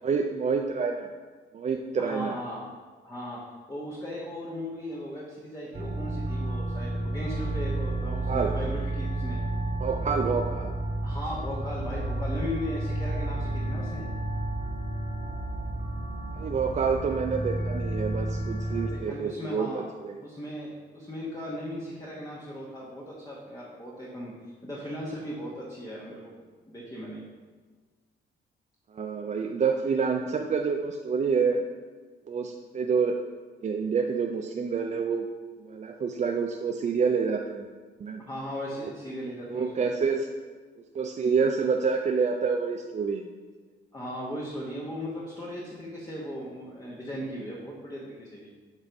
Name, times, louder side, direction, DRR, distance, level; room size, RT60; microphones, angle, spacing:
voice 1, 0.0-1.1 1.5-2.4 8.3-8.5 9.8-10.8 16.4-20.2 28.9-31.6 32.3-33.2 33.6-35.3 35.6-37.7 38.0-38.2 39.5-40.3 40.9-43.3, right 5 dB, 35° right, 3 dB, 0.4 m, -28 dB
voice 2, 2.0-2.7 3.0-3.4 3.7-9.4 11.0-14.1 18.7-19.8 20.2-26.3 26.7-27.2 38.3-39.9 43.9-48.5, equal, 20° left, -4 dB, 1.2 m, -37 dB
sound 1, 5.7-18.9, right 1 dB, 55° right, 1.3 m, -31 dB
7.5 x 3.2 x 5.2 m, 1.4 s
cardioid pair, 90°, 20 cm